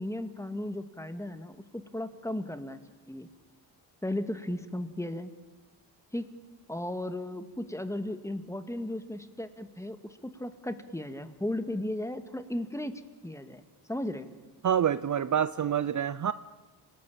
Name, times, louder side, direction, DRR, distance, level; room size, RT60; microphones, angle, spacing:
voice 1, 0.0-2.8 3.1-3.3 4.0-5.3 6.1-6.3 6.7-13.6 13.9-14.3, left 1 dB, 5° left, 9 dB, 2.1 m, -35 dB
voice 2, 14.6-16.3, right 9 dB, 45° right, 15 dB, 0.7 m, -27 dB
29.0 x 19.0 x 9.0 m, 1.2 s
cardioid pair, 90°, 42 cm